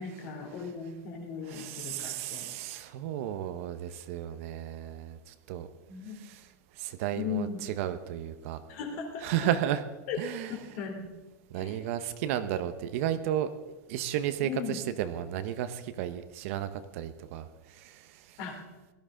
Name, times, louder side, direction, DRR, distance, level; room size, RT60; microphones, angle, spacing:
voice 1, 0.0-2.5 5.9-6.2 7.1-7.6 8.7-9.3 10.1-10.2 10.5-11.1 11.5-11.8 14.4-14.8 18.4-18.6, left 7 dB, 45° left, 3 dB, 2.8 m, -37 dB
voice 2, 1.4-5.7 6.1-6.5 6.8-8.6 9.2-9.8 10.2-10.6 11.5-13.5 13.9-18.4, right 11 dB, 50° right, 11 dB, 0.8 m, -33 dB
18.0 x 12.5 x 3.8 m, 1.1 s
supercardioid pair, 165°, 9 cm